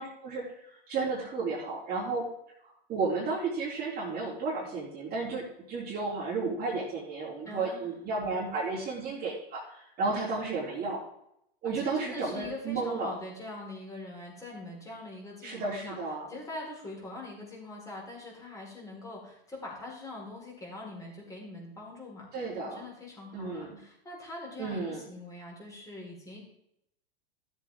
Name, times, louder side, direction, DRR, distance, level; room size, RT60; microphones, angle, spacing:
voice 1, 0.0-2.3 2.9-11.0 11.6-13.1 15.4-16.3 22.3-22.8 23.3-23.8 24.6-25.0, right 3 dB, 30° right, -6 dB, 3.5 m, -33 dB
voice 2, 7.4-7.9 11.6-16.0 16.3-26.4, left 2 dB, 10° left, -3 dB, 4.6 m, -43 dB
14.0 x 7.7 x 3.7 m, 0.76 s
hypercardioid pair, 120°, 29 cm